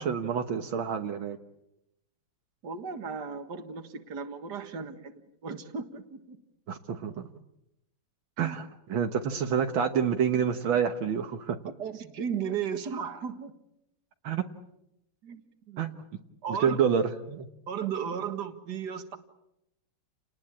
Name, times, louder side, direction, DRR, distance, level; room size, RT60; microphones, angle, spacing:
voice 1, 0.0-1.4 6.7-7.2 8.4-11.6 14.2-14.4 15.8-15.9 16.6-17.5, right 7 dB, 80° right, 5 dB, 2.0 m, -28 dB
voice 2, 2.6-6.4 8.4-8.6 11.7-13.5 15.2-15.4 15.7-15.9 16.4-16.9 17.7-19.2, right 7 dB, 55° right, 8 dB, 2.3 m, -35 dB
29.5 x 19.5 x 8.8 m, 0.87 s
omnidirectional pair, 2.2 m